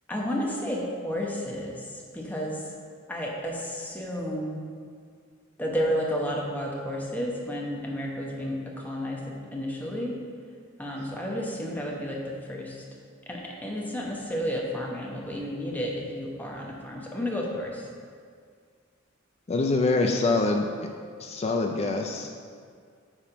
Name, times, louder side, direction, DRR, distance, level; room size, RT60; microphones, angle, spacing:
voice 1, 0.1-2.6 3.1-4.6 5.6-10.2 10.8-12.8 13.3-17.8, equal, 10° left, -2 dB, 1.0 m, -32 dB
voice 2, 19.5-20.9 21.2-22.3, left 3 dB, 30° left, 3 dB, 0.4 m, -25 dB
8.9 x 3.5 x 5.9 m, 2.1 s
head